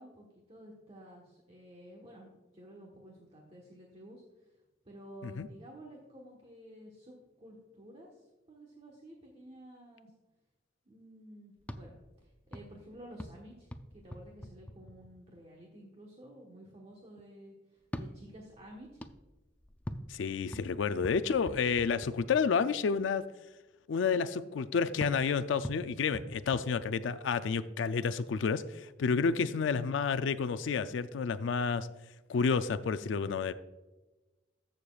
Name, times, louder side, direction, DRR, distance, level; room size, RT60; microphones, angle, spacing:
voice 1, 0.0-4.6 4.8-10.1 10.8-19.0, equal, 35° right, -1 dB, 1.2 m, -52 dB
sound 1, 11.6-15.4 17.8-22.7 25.0-27.4, equal, 10° left, 0.4 m, -46 dB
voice 2, 20.1-23.2 23.9-31.9 32.3-33.5, left 5 dB, 80° left, 12 dB, 0.4 m, -30 dB
14.0 x 6.5 x 2.4 m, 1.1 s
head